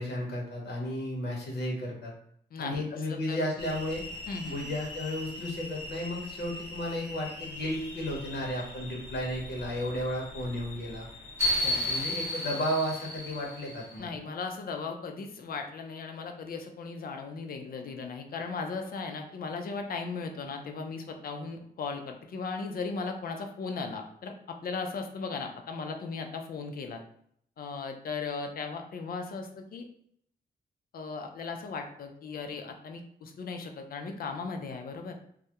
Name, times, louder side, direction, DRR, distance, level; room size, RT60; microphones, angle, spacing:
voice 1, 0.0-2.1 2.6-4.0 4.4-11.1 11.8-14.1, left 1 dB, 70° left, -2 dB, 0.8 m, -33 dB
voice 2, 2.5-3.4 4.3-4.7 11.6-11.9 14.0-27.0 27.6-29.9 30.9-35.2, left 4 dB, 55° left, 4 dB, 0.4 m, -37 dB
sound 1, 3.6-14.0, left 1 dB, 15° right, 0.6 m, -36 dB
2.3 x 2.0 x 2.8 m, 0.67 s
wide cardioid pair, 135°, 18 cm